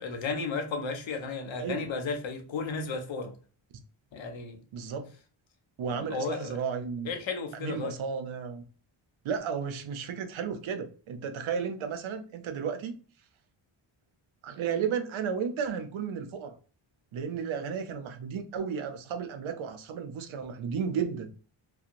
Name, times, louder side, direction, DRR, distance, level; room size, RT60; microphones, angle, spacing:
voice 1, 0.0-3.3 4.1-4.6 5.9-6.6 7.1-7.9, left 4 dB, 65° left, 0.8 m, -34 dB
voice 2, 4.7-5.1 5.8-7.1 7.5-8.6 9.2-13.0 14.4-16.6 17.1-21.3, right 6 dB, 75° right, 0.6 m, -33 dB
2.8 x 2.2 x 2.5 m
cardioid pair, 75°, 49 cm